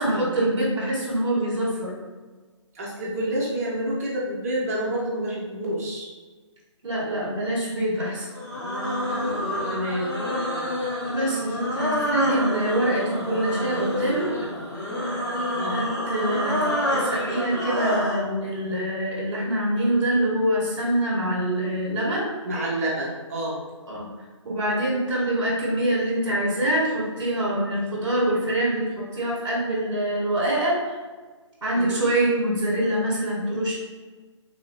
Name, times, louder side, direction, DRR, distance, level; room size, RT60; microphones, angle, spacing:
voice 1, 0.0-1.9 6.8-8.3 11.1-14.3 15.7-16.6 16.9-22.3 23.9-24.1 24.4-30.9 31.6-33.8, right 1 dB, 55° right, -6 dB, 1.4 m, -25 dB
voice 2, 2.7-6.1 9.7-10.0 15.6-15.9 22.4-23.6 31.7-32.0, right 1 dB, 30° right, -5 dB, 0.7 m, -28 dB
sound 1, 8.3-18.3, left 1 dB, 40° left, 1.0 m, -27 dB
3.4 x 2.6 x 3.1 m, 1.3 s
figure-of-eight pair, 145°, 16 cm